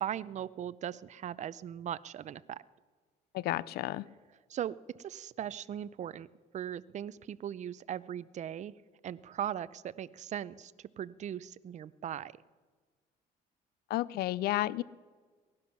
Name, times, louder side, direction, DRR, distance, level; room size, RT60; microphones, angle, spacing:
voice 1, 0.0-2.6 4.5-6.3 6.5-8.7 9.0-10.7 11.0-12.3, right 10 dB, 45° right, 17 dB, 0.5 m, -39 dB
voice 2, 3.3-4.1 13.9-14.8, left 15 dB, 70° left, 20 dB, 0.4 m, -31 dB
17.0 x 11.5 x 5.9 m, 1.4 s
cardioid pair, 110°, 17 cm